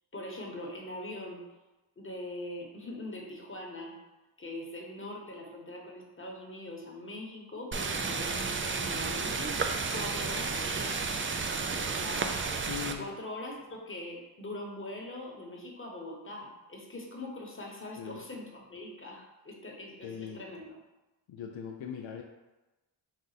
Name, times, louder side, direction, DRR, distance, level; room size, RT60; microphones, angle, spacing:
voice 1, 0.1-1.4 2.0-4.0 4.4-9.6 9.9-11.1 11.7-12.3 13.0-20.7, left 1 dB, 25° left, -1 dB, 1.1 m, -42 dB
sound 1, 7.7-12.9, right 4 dB, 30° right, 0.4 m, -32 dB
voice 2, 12.7-13.1 18.0-18.2 20.0-20.5 21.3-22.2, left 8 dB, 70° left, 2 dB, 0.5 m, -40 dB
5.1 x 2.4 x 4.0 m, 1.1 s
cardioid pair, 55°, 49 cm